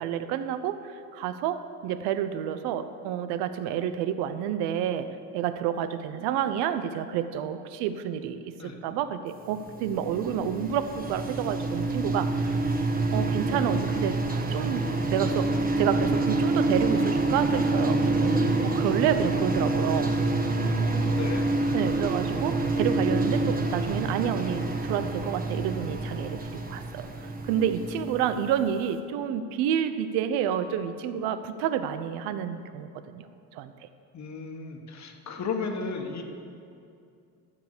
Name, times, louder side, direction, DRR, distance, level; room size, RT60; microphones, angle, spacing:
voice 1, 0.0-12.6 13.1-20.1 21.7-33.7, right 9 dB, 85° right, 11 dB, 0.8 m, -29 dB
sound 1, 9.6-28.6, right 2 dB, 20° right, 1.4 m, -27 dB
voice 2, 21.0-21.5 34.1-36.2, left 4 dB, 45° left, 4 dB, 1.6 m, -34 dB
13.0 x 7.4 x 6.7 m, 2.5 s
supercardioid pair, 90°, 38 cm